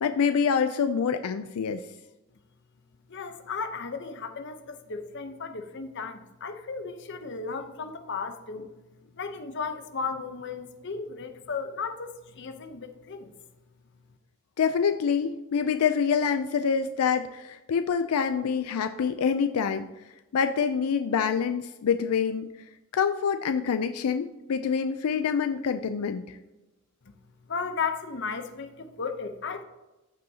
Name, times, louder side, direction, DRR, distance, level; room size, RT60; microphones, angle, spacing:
voice 1, 0.0-1.8 14.6-19.9 20.3-22.5 22.9-26.3, left 6 dB, 85° left, 9 dB, 0.4 m, -26 dB
voice 2, 3.1-8.7 9.1-13.3 27.5-29.6, left 5 dB, 55° left, 8 dB, 0.8 m, -35 dB
14.5 x 5.4 x 2.8 m, 1.0 s
head